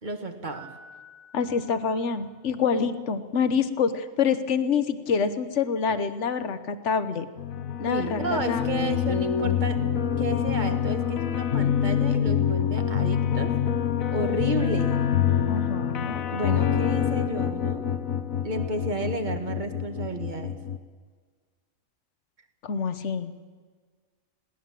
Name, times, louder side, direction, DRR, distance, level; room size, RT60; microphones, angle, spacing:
voice 1, 0.0-0.7 7.9-9.9 10.2-13.5 14.1-15.0 16.3-17.8 18.4-20.5, right 2 dB, 35° right, 6 dB, 2.0 m, -32 dB
Piano, 0.5-2.6, equal, 60° right, 2.7 m, -51 dB
voice 2, 1.3-7.3 7.8-8.9 15.5-16.9 22.6-23.3, left 6 dB, 60° left, 11 dB, 1.4 m, -27 dB
sound 1, 7.4-20.8, left 9 dB, 85° left, 1.4 m, -26 dB
21.5 x 18.0 x 7.6 m, 1.5 s
omnidirectional pair, 1.4 m